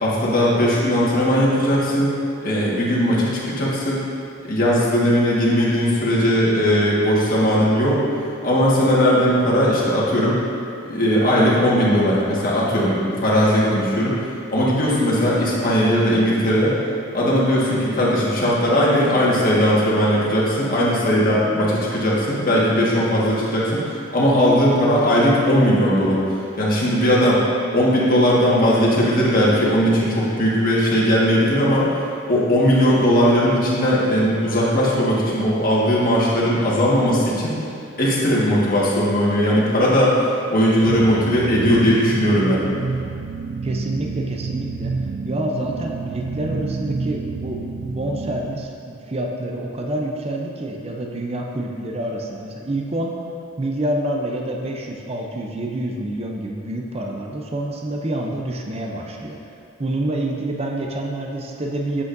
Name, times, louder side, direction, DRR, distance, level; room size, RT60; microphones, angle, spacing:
voice 1, 0.0-2.1 2.4-4.0 4.4-8.0 8.4-10.4 10.8-14.2 14.5-16.8 17.1-26.2 26.6-27.4 27.7-31.9 32.3-37.5 38.0-40.2 40.5-42.6, equal, 45° left, -6 dB, 1.5 m, -18 dB
sound 1, 40.9-48.7, right 4 dB, 85° right, 0.4 m, -28 dB
voice 2, 43.6-44.9 45.2-53.1 53.6-59.4 59.8-62.0, right 1 dB, 30° right, 0 dB, 0.6 m, -27 dB
8.3 x 8.0 x 2.6 m, 2.5 s
head